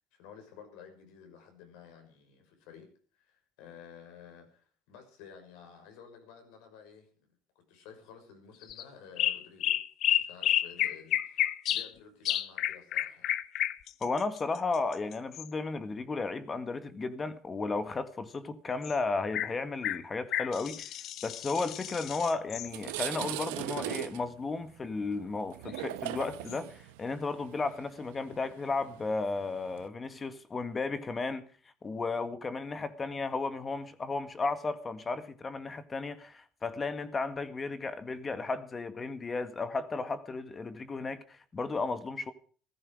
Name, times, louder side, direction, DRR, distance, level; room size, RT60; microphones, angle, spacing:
voice 1, 0.1-7.3 7.7-9.8 10.2-13.4, left 7 dB, 75° left, 6.1 m, -53 dB
sound 1, 8.6-8.8 9.2-11.9 12.2-15.5 18.8-18.9 19.3-19.5 19.8-22.7 25.7-25.8 26.5-26.6, left 12 dB, 60° left, 1.0 m, -31 dB
voice 2, 14.0-20.9 21.2-31.5 31.8-42.3, left 3 dB, 30° left, 1.9 m, -34 dB
sound 2, 22.1-22.2 22.6-29.9, right 15 dB, 85° right, 1.0 m, -40 dB
15.5 x 14.5 x 4.9 m
hypercardioid pair, 75°, 0 cm